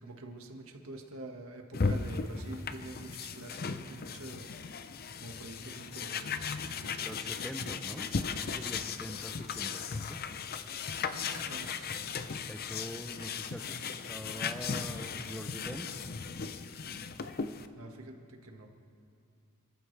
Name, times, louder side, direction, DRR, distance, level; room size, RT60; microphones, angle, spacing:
voice 1, 0.0-4.6 5.2-7.1 11.1-11.9 17.8-18.7, right 2 dB, 70° right, 3 dB, 1.7 m, -46 dB
sound 1, 1.7-17.7, left 5 dB, 45° left, 0.6 m, -37 dB
voice 2, 7.0-10.2 12.5-15.9, equal, 5° left, 7 dB, 0.7 m, -44 dB
28.0 x 14.0 x 3.4 m, 2.4 s
head